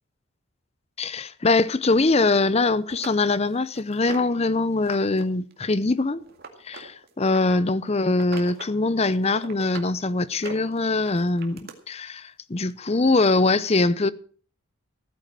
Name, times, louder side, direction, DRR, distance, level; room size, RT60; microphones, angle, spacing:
voice 1, 1.0-6.2 6.6-14.1, left 3 dB, 30° left, 0.6 m, -22 dB
sound 1, 2.3-2.4 2.9-4.4 4.8-5.2 5.5-7.6 8.1-8.7 9.1-9.9 10.3-11.7 12.7-12.8 13.2-13.3, right 4 dB, 45° right, 2.1 m, -41 dB
15.5 x 9.6 x 6.2 m
head